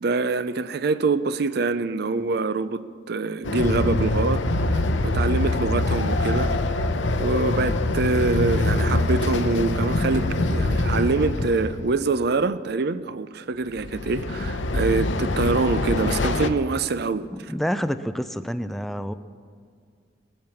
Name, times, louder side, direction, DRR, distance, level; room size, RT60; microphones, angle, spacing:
voice 1, 0.0-4.4 4.7-6.9 7.2-17.3, right 3 dB, 60° right, 0.5 m, -25 dB
Train, 3.4-11.9 13.8-16.5, left 2 dB, 85° left, 0.8 m, -24 dB
voice 2, 17.3-19.1, equal, ahead, 0.4 m, -28 dB
19.5 x 7.7 x 7.1 m
head